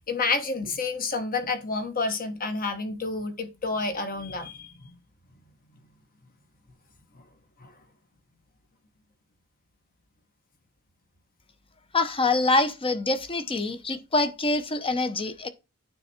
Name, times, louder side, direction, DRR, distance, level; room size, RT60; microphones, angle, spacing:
voice 1, 0.1-4.9 7.1-7.2 7.6-7.7 13.7-13.8, left 3 dB, 40° left, 1.2 m, -29 dB
voice 2, 11.9-15.5, left 2 dB, 25° left, 0.8 m, -25 dB
9.2 x 3.5 x 4.3 m
head